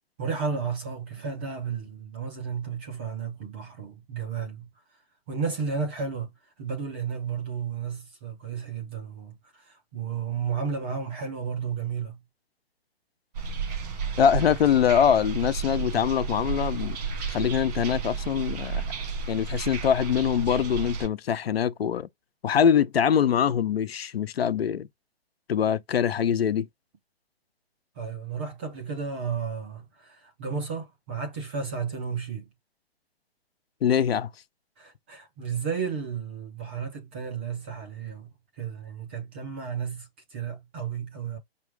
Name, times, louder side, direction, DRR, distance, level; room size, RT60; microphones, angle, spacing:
voice 1, 0.2-4.7 5.3-12.2 28.0-32.5 34.8-41.4, right 6 dB, 10° right, 0.4 m, -33 dB
sound 1, 13.3-21.1, right 6 dB, 40° right, 1.3 m, -32 dB
voice 2, 14.2-17.0 17.3-18.8 19.3-22.1 22.4-24.9 25.5-26.7 33.8-34.3, left 8 dB, 70° left, 0.7 m, -23 dB
5.7 x 2.2 x 3.3 m
hypercardioid pair, 145°, 31 cm